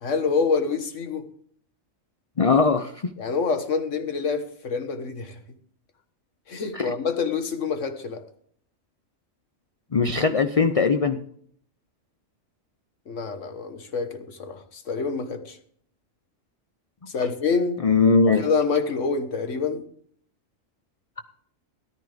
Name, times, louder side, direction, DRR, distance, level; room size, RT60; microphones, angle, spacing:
voice 1, 0.0-1.2 3.2-5.4 6.5-8.2 13.1-15.6 17.1-17.8 18.3-19.8, left 5 dB, 70° left, 8 dB, 1.7 m, -26 dB
voice 2, 2.4-3.1 6.7-6.9 9.9-11.2 17.8-18.5, left 4 dB, 40° left, 9 dB, 0.5 m, -20 dB
14.0 x 12.0 x 3.5 m, 0.62 s
omnidirectional pair, 1.4 m